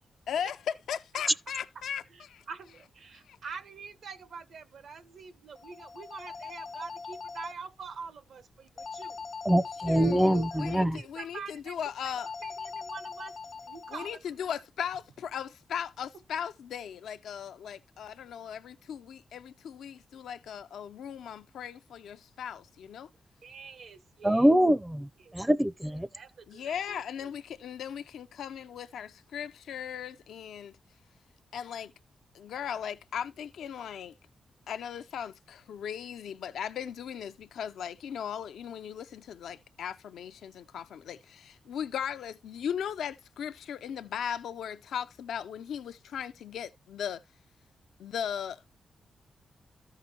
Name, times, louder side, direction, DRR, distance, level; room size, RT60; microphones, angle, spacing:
voice 1, 0.3-2.4 3.3-3.4 9.9-12.3 13.9-23.1 26.5-30.7 31.5-31.9 32.3-34.1 34.7-47.2 48.0-48.7, left 8 dB, 90° left, 0.4 m, -37 dB
voice 2, 2.1-9.2 10.5-11.8 12.0-12.1 12.4-14.5 23.4-24.5 25.2-25.4 26.1-27.3, right 5 dB, 75° right, 1.1 m, -45 dB
sound 1, 5.6-7.5 8.8-10.8 12.2-14.2, left 5 dB, 55° left, 0.6 m, -41 dB
voice 3, 9.4-11.0 24.2-25.1 25.3-26.1, equal, 10° right, 0.5 m, -24 dB
13.5 x 5.7 x 2.8 m
cardioid pair, 65°, 0 cm